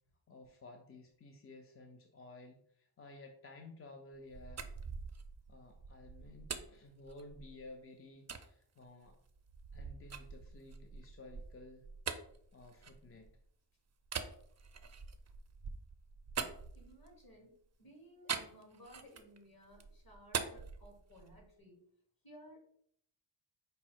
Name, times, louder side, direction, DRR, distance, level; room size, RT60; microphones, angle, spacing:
voice 1, 0.3-4.7 5.5-9.2 9.7-11.9 12.5-13.3, left 2 dB, 30° left, 3 dB, 0.5 m, -54 dB
sound 1, 4.1-7.7 8.3-8.5 9.0-13.5 14.0-17.3 18.3-19.4 19.7-21.5, right 5 dB, 35° right, 0.5 m, -44 dB
voice 2, 16.7-21.8 22.2-22.6, equal, 45° left, 1 dB, 1.7 m, -58 dB
5.2 x 2.0 x 4.6 m, 0.64 s
wide cardioid pair, 75°, 48 cm